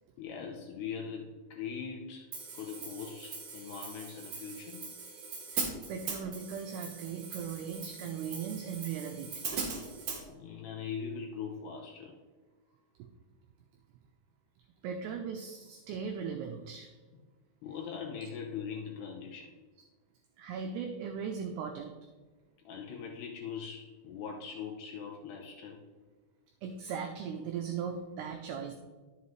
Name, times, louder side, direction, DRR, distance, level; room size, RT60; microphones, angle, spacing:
voice 1, 0.2-4.8 10.3-12.1 17.6-19.5 22.7-25.8, left 6 dB, 75° left, 0 dB, 2.5 m, -41 dB
Hi-hat, 2.3-10.2, right 5 dB, 60° right, 2.4 m, -40 dB
voice 2, 5.5-9.3 14.8-16.9 20.4-21.9 26.6-28.7, right 6 dB, 85° right, 4 dB, 2.3 m, -38 dB
11.0 x 7.5 x 3.2 m, 1.4 s
omnidirectional pair, 5.4 m